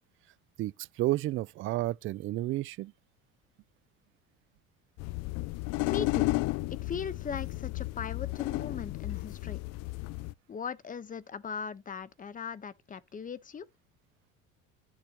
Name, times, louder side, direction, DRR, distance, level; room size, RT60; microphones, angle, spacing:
voice 1, 0.6-2.9, right 16 dB, 40° right, 0.4 m, -31 dB
sound 1, 5.0-10.3, left 21 dB, 60° left, 0.5 m, -33 dB
voice 2, 5.8-6.3 6.7-9.6 10.5-13.7, left 6 dB, 25° left, 1.0 m, -39 dB
11.5 x 7.2 x 2.9 m
supercardioid pair, 105°, 31 cm